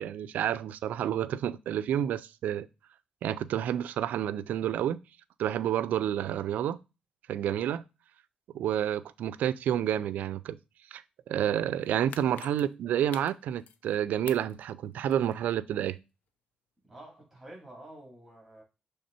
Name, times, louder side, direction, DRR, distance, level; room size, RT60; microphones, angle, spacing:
voice 1, 0.0-2.7 3.2-5.0 5.4-6.8 7.3-7.8 8.5-10.6 10.9-11.0 11.3-16.0, right 10 dB, 90° right, 0.4 m, -29 dB
sound 1, 11.8-13.9 14.3-15.5 15.9-16.0, left 8 dB, 85° left, 0.5 m, -48 dB
voice 2, 16.8-18.6, right 1 dB, 5° right, 3.6 m, -49 dB
6.5 x 3.4 x 4.2 m
cardioid pair, 80°, 3 cm